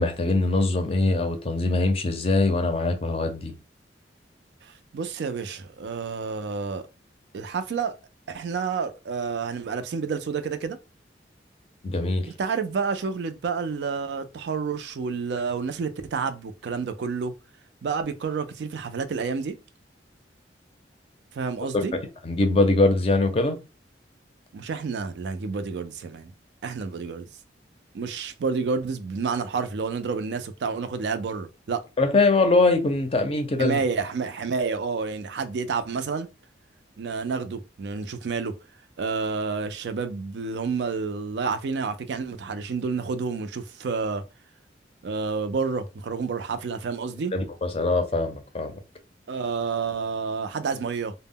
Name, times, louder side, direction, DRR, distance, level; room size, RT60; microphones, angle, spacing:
voice 1, 0.0-3.5 11.8-12.3 21.7-23.6 32.0-33.8 47.3-48.8, left 2 dB, 30° left, 0.5 m, -22 dB
voice 2, 4.6-6.9 7.3-8.0 8.3-10.8 12.4-17.3 17.8-19.6 21.3-21.9 24.5-26.3 26.6-27.3 27.9-31.8 33.6-36.3 37.0-38.5 39.0-44.2 45.0-47.3 49.3-51.1, right 5 dB, 65° right, 0.4 m, -29 dB
2.1 x 2.0 x 3.5 m
head